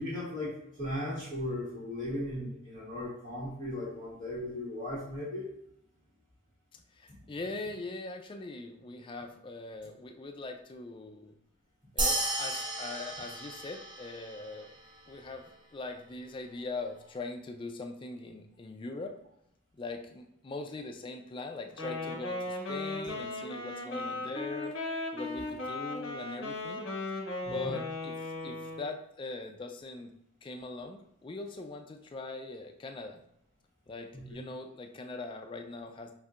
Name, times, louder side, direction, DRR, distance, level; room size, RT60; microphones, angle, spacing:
voice 1, 0.0-5.5 27.4-27.7 34.1-34.2, left 1 dB, 40° right, -10 dB, 1.4 m, -37 dB
voice 2, 6.9-11.4 11.9-14.7 15.1-19.1 19.7-24.8 25.1-30.1 30.4-33.2 33.9-36.1, left 3 dB, 25° left, 4 dB, 0.3 m, -41 dB
sound 1, 12.0-14.7, right 1 dB, 25° right, 0.5 m, -33 dB
Wind instrument woodwind instrument, 21.7-29.0, left 2 dB, 75° left, 1.0 m, -37 dB
5.4 x 2.6 x 2.4 m, 0.75 s
head